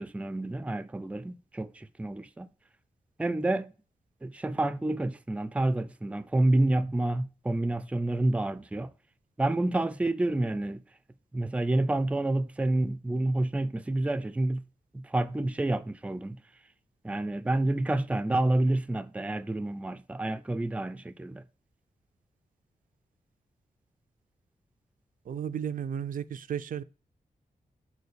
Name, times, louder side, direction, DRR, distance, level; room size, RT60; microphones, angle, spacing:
voice 1, 0.0-2.5 3.2-3.7 4.2-8.9 9.4-10.8 11.3-14.6 14.9-16.4 17.0-21.4, right 2 dB, 10° right, 0.4 m, -28 dB
voice 2, 25.3-26.8, right 8 dB, 70° right, 0.5 m, -34 dB
6.9 x 4.5 x 6.6 m
wide cardioid pair, 170°, 15 cm